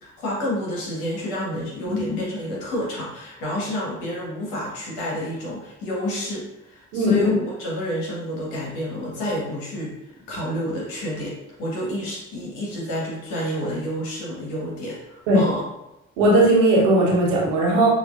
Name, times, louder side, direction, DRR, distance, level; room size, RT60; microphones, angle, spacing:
voice 1, 0.0-9.9 10.3-15.6, equal, 70° left, -5 dB, 1.6 m, -29 dB
voice 2, 6.9-7.3 15.3-15.4 16.2-17.9, right 1 dB, 80° right, -3 dB, 1.1 m, -18 dB
6.4 x 3.0 x 2.6 m, 0.92 s
figure-of-eight pair, 40°, 37 cm